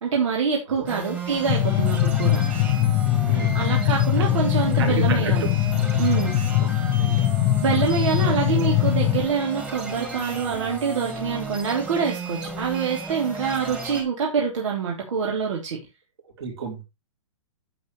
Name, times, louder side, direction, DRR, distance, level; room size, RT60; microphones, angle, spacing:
voice 1, 0.0-2.4 3.5-5.5 6.0-6.4 7.6-15.8, right 6 dB, 75° right, 3.2 m, -25 dB
sound 1, 0.9-14.0, right 3 dB, 10° right, 2.0 m, -34 dB
sound 2, 1.5-9.3, left 13 dB, 30° left, 1.1 m, -22 dB
voice 2, 3.3-3.6 4.2-4.3 4.8-5.5 7.0-7.3 16.4-16.8, right 5 dB, 55° right, 4.9 m, -31 dB
11.0 x 7.7 x 3.2 m
hypercardioid pair, 165°, 16 cm